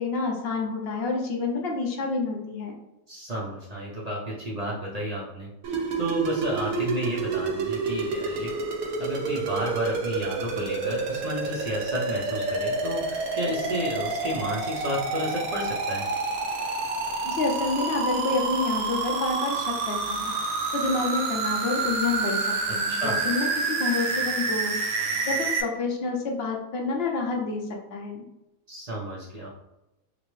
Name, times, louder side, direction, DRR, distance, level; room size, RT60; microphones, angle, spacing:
voice 1, 0.0-2.7 17.2-20.3 20.7-24.8 25.2-27.6 27.9-28.2, left 3 dB, 55° left, 1 dB, 0.8 m, -28 dB
voice 2, 3.1-5.5 6.0-8.5 9.0-16.1 22.9-23.2 28.7-29.5, equal, 35° right, -5 dB, 0.6 m, -32 dB
sound 1, 5.6-25.6, right 3 dB, 75° right, 1.1 m, -28 dB
5.2 x 2.1 x 3.1 m, 0.93 s
omnidirectional pair, 1.5 m